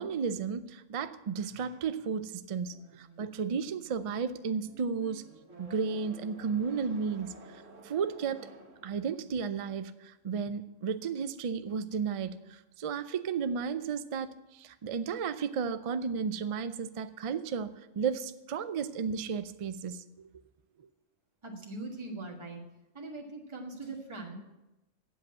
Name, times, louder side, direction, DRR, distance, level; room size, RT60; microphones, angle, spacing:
voice 1, 0.0-5.2 5.6-7.3 7.8-8.5 8.8-20.3, right 6 dB, 60° right, 12 dB, 0.3 m, -33 dB
sound 1, 1.4-9.4, right 2 dB, 75° right, 1.8 m, -54 dB
voice 2, 21.4-22.7 22.9-24.4, right 2 dB, 25° right, 0 dB, 1.6 m, -41 dB
8.0 x 7.8 x 8.6 m, 0.99 s
omnidirectional pair, 1.3 m